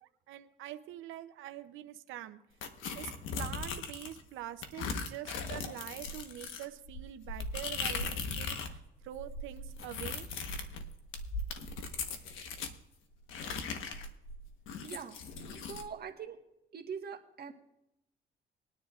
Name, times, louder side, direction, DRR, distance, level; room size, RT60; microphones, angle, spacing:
voice 1, 0.0-2.4 2.9-10.3, right 13 dB, 90° right, 9 dB, 0.7 m, -45 dB
sound 1, 2.6-4.2 4.6-8.8 9.0-12.8 13.3-15.9, left 4 dB, 85° left, 1.2 m, -39 dB
voice 2, 14.8-15.2 15.6-16.4 16.7-17.5, right 6 dB, 50° right, 4 dB, 1.5 m, -42 dB
21.5 x 10.0 x 2.5 m, 0.86 s
cardioid pair, 90°, 20 cm